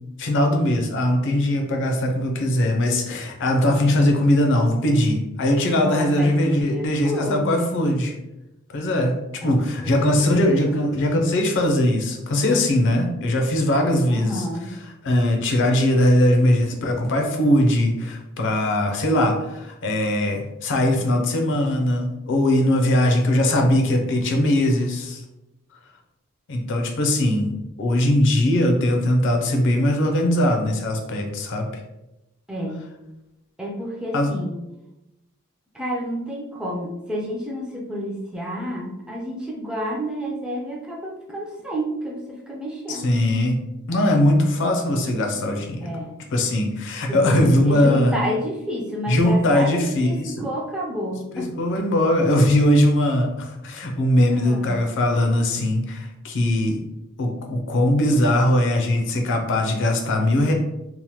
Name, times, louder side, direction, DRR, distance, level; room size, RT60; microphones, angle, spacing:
voice 1, 0.2-8.1 8.7-14.5 15.0-25.2 26.5-27.5 27.8-31.7 34.1-34.3 42.9-43.6 43.9-45.9 46.3-48.1 49.1-50.5 51.3-56.8 57.2-60.5, left 1 dB, 55° left, 3 dB, 0.5 m, -20 dB
voice 2, 5.7-7.7 9.4-10.2 10.4-10.9 14.1-14.7 32.5-32.8 33.6-34.6 35.7-43.2 45.8-46.2 47.1-51.6 54.3-54.8, equal, 5° right, -2 dB, 0.3 m, -30 dB
2.9 x 2.0 x 2.9 m, 0.93 s
head